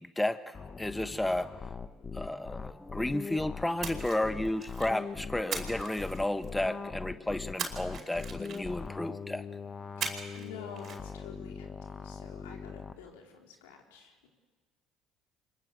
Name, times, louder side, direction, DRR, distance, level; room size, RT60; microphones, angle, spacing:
voice 1, 0.0-1.5 2.1-9.4, left 1 dB, 10° left, 11 dB, 1.1 m, -32 dB
sound 1, 0.5-12.9, left 5 dB, 30° left, 1.2 m, -42 dB
Splash splatter, 3.8-5.0 5.5-6.7 7.6-8.9 10.0-10.5 10.8-11.0, right 6 dB, 50° right, 4.9 m, -39 dB
voice 2, 10.0-14.3, left 6 dB, 90° left, 1 dB, 3.9 m, -50 dB
25.5 x 21.5 x 7.9 m, 1.4 s
supercardioid pair, 80°, 0 cm